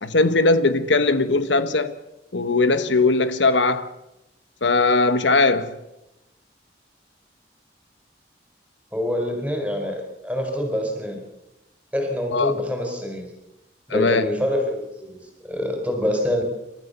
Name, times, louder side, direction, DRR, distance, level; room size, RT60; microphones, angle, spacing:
voice 1, 0.0-1.9 2.3-3.9 4.6-5.7 12.3-12.5 13.9-14.2, left 3 dB, 85° left, 1.2 m, -19 dB
voice 2, 8.9-11.2 11.9-13.3 13.9-16.4, left 1 dB, 5° right, 4.8 m, -26 dB
29.0 x 14.0 x 6.8 m
head